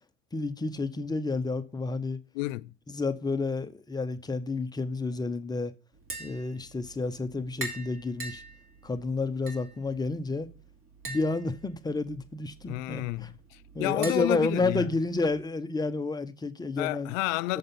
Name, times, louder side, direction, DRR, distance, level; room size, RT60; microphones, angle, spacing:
voice 1, 0.3-2.2 2.9-5.7 6.2-8.4 8.8-10.5 11.1-13.3 13.7-17.1 17.5-17.6, left 3 dB, 10° left, 0.6 m, -30 dB
voice 2, 2.3-2.7 12.7-14.9 16.8-17.6, left 20 dB, 65° left, 0.6 m, -31 dB
Tap, 5.9-15.4, right 2 dB, 30° right, 2.9 m, -44 dB
6.9 x 5.3 x 6.8 m
hypercardioid pair, 100°, 42 cm